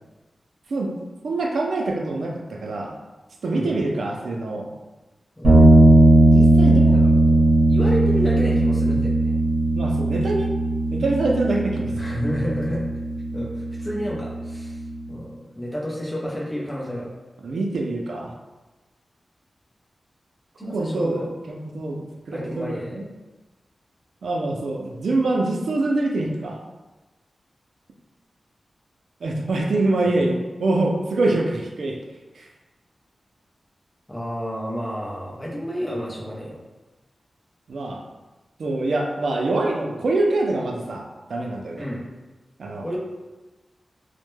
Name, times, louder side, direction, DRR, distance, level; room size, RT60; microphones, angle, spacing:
voice 1, 1.2-2.9 3.4-4.7 6.3-7.1 9.7-10.5 10.9-11.9 17.4-18.3 20.7-21.2 21.5-23.1 24.2-26.6 29.2-32.0 32.4-32.5 37.7-38.0 38.6-41.9 42.6-43.0, right 2 dB, 85° right, 1 dB, 0.3 m, -25 dB
voice 2, 3.5-3.8 5.4-5.6 6.9-7.4 7.7-9.3 11.9-12.9 13.3-14.8 15.1-17.1 20.6-21.3 22.3-23.1 34.1-36.6 41.8-42.0 42.8-43.0, equal, 15° left, -4 dB, 0.5 m, -30 dB
sound 1, 5.4-14.9, right 2 dB, 55° right, 0.8 m, -18 dB
2.1 x 2.1 x 3.1 m, 1.1 s
wide cardioid pair, 120°, 0 cm